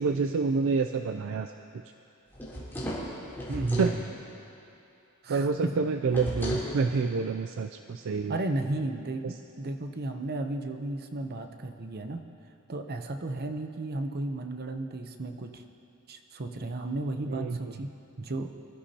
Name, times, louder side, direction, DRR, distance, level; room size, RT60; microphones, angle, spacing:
voice 1, 0.0-1.5 3.8-3.9 5.3-8.4 9.2-9.3 17.3-17.7, right 4 dB, 65° right, 7 dB, 0.4 m, -28 dB
sound 1, 2.3-4.0 6.1-6.7, equal, 10° left, 3.2 m, -34 dB
voice 2, 3.5-4.0 5.2-5.8 8.3-12.2 12.7-15.6 16.1-17.9 18.2-18.5, right 2 dB, 45° right, 6 dB, 0.8 m, -33 dB
24.5 x 13.0 x 2.9 m, 2.8 s
head